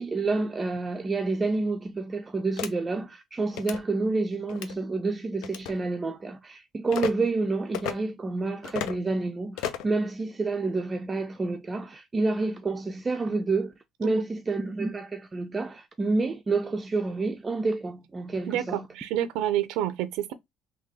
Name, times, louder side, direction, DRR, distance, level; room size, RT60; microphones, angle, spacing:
voice 1, 0.0-13.7 14.0-18.9, right 3 dB, 20° right, 0.4 m, -29 dB
sound 1, 2.6-2.7 3.5-3.8 4.5-4.7 5.4-5.7 6.9-7.1 7.7-7.9 8.6-9.0 9.6-9.9, left 10 dB, 85° left, 0.5 m, -33 dB
voice 2, 18.5-20.3, right 12 dB, 85° right, 0.5 m, -28 dB
3.6 x 2.2 x 3.2 m
cardioid pair, 120°, 0 cm